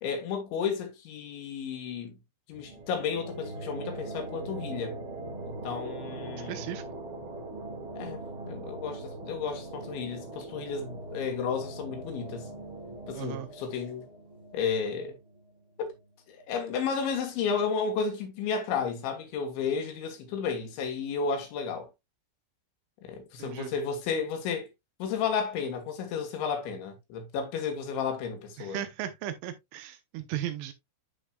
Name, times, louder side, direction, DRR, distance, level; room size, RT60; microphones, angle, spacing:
voice 1, 0.0-2.2 2.5-5.0 5.5-6.6 7.9-12.5 13.1-14.0 14.5-15.2 15.8-15.9 16.4-21.9 23.0-24.7 25.0-28.8, left 6 dB, 70° left, 3.4 m, -32 dB
sound 1, 2.5-15.9, right 2 dB, 65° right, 1.2 m, -41 dB
voice 2, 6.5-6.8 13.1-13.5 23.4-23.7 28.6-30.7, right 12 dB, 80° right, 3.1 m, -36 dB
11.5 x 4.0 x 2.2 m
omnidirectional pair, 5.8 m